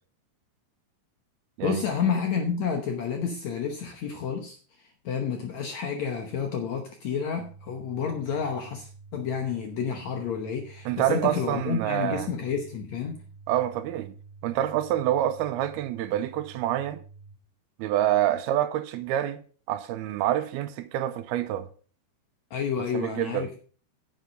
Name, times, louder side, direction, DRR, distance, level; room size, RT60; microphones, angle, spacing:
voice 1, 1.6-13.2 22.5-23.6, left 6 dB, 70° left, 1.8 m, -30 dB
sound 1, 7.4-17.4, right 4 dB, 65° right, 2.3 m, -49 dB
voice 2, 10.9-12.3 13.5-14.1 14.4-17.0 17.8-19.4 19.7-21.7 22.9-23.4, right 12 dB, 85° right, 2.6 m, -27 dB
9.5 x 7.4 x 5.2 m
omnidirectional pair, 4.5 m